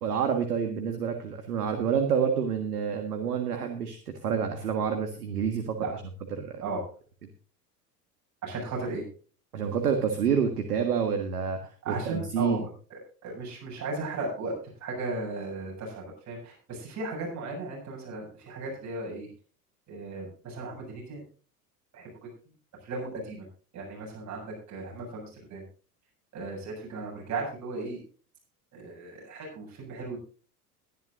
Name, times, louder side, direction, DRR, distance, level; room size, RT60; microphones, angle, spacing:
voice 1, 0.0-5.8 6.4-6.6 9.5-11.6 11.9-12.6, right 7 dB, 70° right, 6 dB, 1.8 m, -28 dB
voice 2, 6.6-6.9 8.4-9.0 11.8-14.5 14.8-19.3 19.9-21.2 21.9-22.3 22.8-23.5 23.7-25.6 26.3-28.0 28.7-30.2, right 3 dB, 35° right, -2 dB, 7.9 m, -36 dB
21.5 x 11.0 x 2.6 m, 0.39 s
figure-of-eight pair, 75°, 47 cm